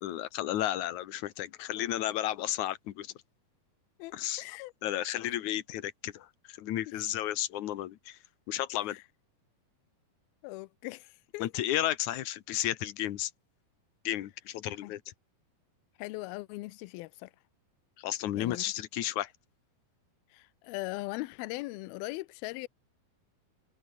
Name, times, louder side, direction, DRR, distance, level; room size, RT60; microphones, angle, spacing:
voice 1, 0.0-3.1 4.1-4.4 4.8-8.2 8.5-9.0 11.4-13.3 14.0-15.0 18.0-19.3, left 13 dB, 65° left, 2.3 m, -33 dB
voice 2, 4.0-4.7 8.9-9.0 10.4-11.5 14.7-14.9 16.0-17.3 18.3-18.6 20.3-22.7, left 20 dB, 85° left, 2.5 m, -40 dB
omnidirectional pair, 4.4 m